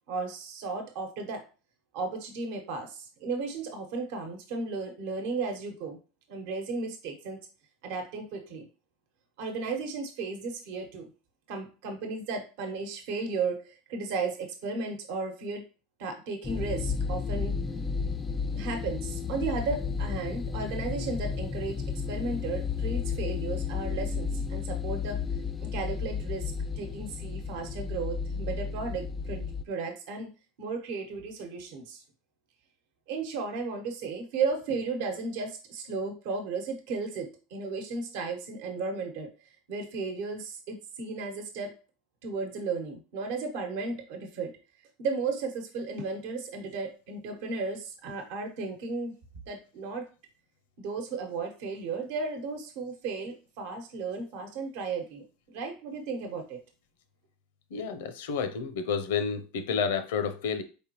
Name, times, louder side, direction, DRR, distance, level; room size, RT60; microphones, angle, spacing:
voice 1, 0.1-1.4 1.9-6.0 6.3-7.4 7.8-8.7 9.4-11.1 11.5-15.6 16.0-17.5 18.5-21.8 22.1-25.2 25.6-30.3 30.6-32.0 33.1-39.3 39.7-41.7 42.2-44.5 45.0-49.1 49.5-50.1 50.8-56.6, right 4 dB, 70° right, 1.0 m, -34 dB
sound 1, 16.4-29.6, left 5 dB, 15° left, 0.3 m, -33 dB
voice 2, 57.7-60.6, left 6 dB, 80° left, 0.6 m, -30 dB
4.5 x 3.5 x 2.9 m
supercardioid pair, 110°, 0 cm